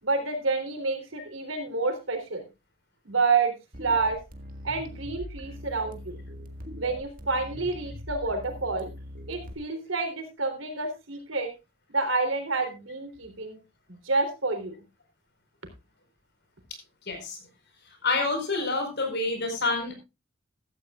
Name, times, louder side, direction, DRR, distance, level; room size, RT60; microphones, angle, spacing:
voice 1, 0.0-2.5 3.1-3.5 3.8-4.2 4.6-6.2 6.8-8.9 9.3-11.5 11.9-13.6 13.9-14.8, right 3 dB, 80° right, 6 dB, 3.5 m, -28 dB
sound 1, 3.7-9.5, equal, 45° right, 1.8 m, -41 dB
voice 2, 17.1-17.4 18.0-19.9, left 3 dB, 60° left, 5 dB, 4.7 m, -27 dB
15.0 x 13.5 x 2.4 m, 0.26 s
head